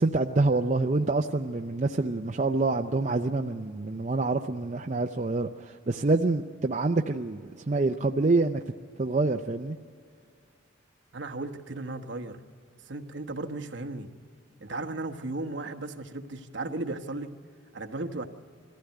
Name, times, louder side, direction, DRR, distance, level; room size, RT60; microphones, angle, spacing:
voice 1, 0.0-8.6 9.0-9.8, right 3 dB, 35° right, 4 dB, 0.5 m, -26 dB
voice 2, 11.1-12.4 12.9-14.1 14.6-17.3 17.7-18.3, right 2 dB, 60° right, 5 dB, 1.2 m, -35 dB
22.5 x 15.0 x 9.2 m, 2.2 s
head